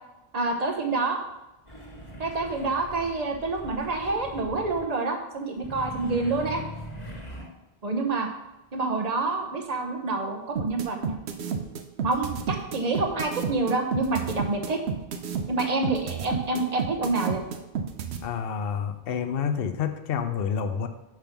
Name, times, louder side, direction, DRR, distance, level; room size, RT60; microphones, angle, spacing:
voice 1, 0.3-1.2 2.2-6.6 7.8-8.3 8.7-11.2 12.0-14.8 15.5-17.4, right 3 dB, 40° right, 3 dB, 1.0 m, -27 dB
sound 1, 1.7-4.9 5.6-7.4, equal, 30° left, 1.8 m, -41 dB
sound 2, 10.6-18.2, right 6 dB, 80° right, 1.0 m, -30 dB
voice 2, 18.2-20.9, left 7 dB, 65° left, 8 dB, 0.9 m, -28 dB
5.9 x 5.2 x 5.9 m, 0.95 s
omnidirectional pair, 1.1 m